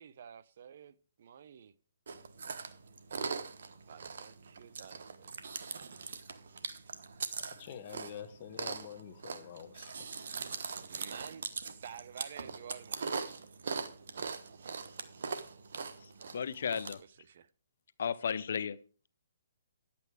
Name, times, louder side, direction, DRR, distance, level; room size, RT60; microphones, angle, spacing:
voice 1, 0.0-1.7 3.9-5.5 10.9-13.1 14.5-14.6 17.3-17.5, right 8 dB, 55° right, 0.7 m, -51 dB
Chewing mastication, 2.1-16.9, right 5 dB, 70° right, 1.2 m, -41 dB
voice 2, 7.5-10.1, left 9 dB, 40° left, 1.2 m, -47 dB
voice 3, 16.0-17.0 18.0-18.8, left 7 dB, 65° left, 0.6 m, -35 dB
10.5 x 8.5 x 4.8 m
hypercardioid pair, 155°, 0 cm